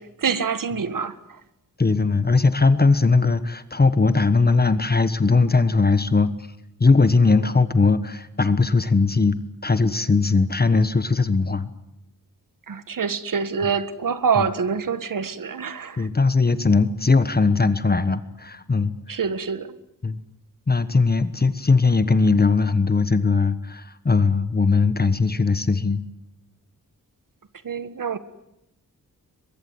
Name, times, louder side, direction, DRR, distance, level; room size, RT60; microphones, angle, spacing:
voice 1, 0.0-1.4 12.7-16.1 19.1-19.7 27.6-28.2, right 6 dB, 65° right, 12 dB, 1.7 m, -26 dB
voice 2, 1.8-6.3 6.8-11.7 16.0-18.9 20.0-20.2 20.7-26.0, left 4 dB, 25° left, 12 dB, 1.2 m, -19 dB
23.0 x 22.5 x 9.6 m, 0.85 s
wide cardioid pair, 115°, 35 cm